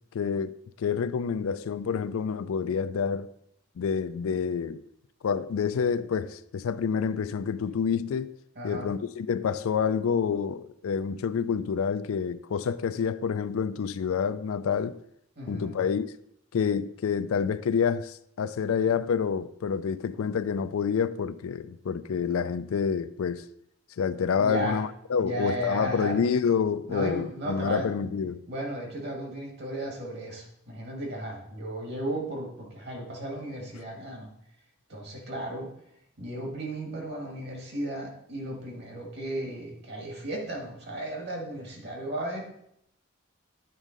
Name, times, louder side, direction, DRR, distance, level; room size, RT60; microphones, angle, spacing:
voice 1, 0.1-3.3 3.8-4.8 5.2-8.3 8.6-15.0 15.5-16.1 16.5-23.5 24.0-28.4, left 6 dB, 85° left, 0.4 m, -28 dB
voice 2, 8.6-8.9 15.4-15.8 24.4-24.8 25.2-26.2 26.9-28.0 28.5-34.3 34.9-35.7 36.2-42.5, right 1 dB, 50° right, 1.9 m, -35 dB
9.0 x 3.6 x 5.2 m
head